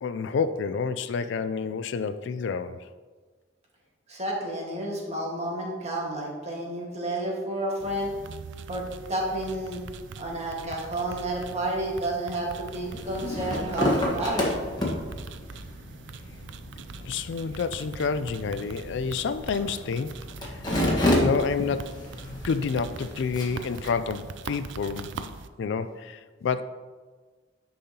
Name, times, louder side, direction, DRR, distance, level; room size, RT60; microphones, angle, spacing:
voice 1, 0.0-2.9 17.0-20.2 20.5-20.6 21.2-25.2 25.6-26.6, left 5 dB, 65° left, 12 dB, 0.3 m, -29 dB
voice 2, 4.1-8.1 8.7-9.8 10.2-14.5, right 1 dB, 35° right, -2 dB, 1.6 m, -30 dB
sound 1, 7.8-25.5, right 5 dB, 70° right, 0.4 m, -42 dB
sound 2, 12.8-23.9, left 1 dB, 20° left, 1.4 m, -31 dB
10.0 x 5.5 x 2.9 m, 1.4 s
head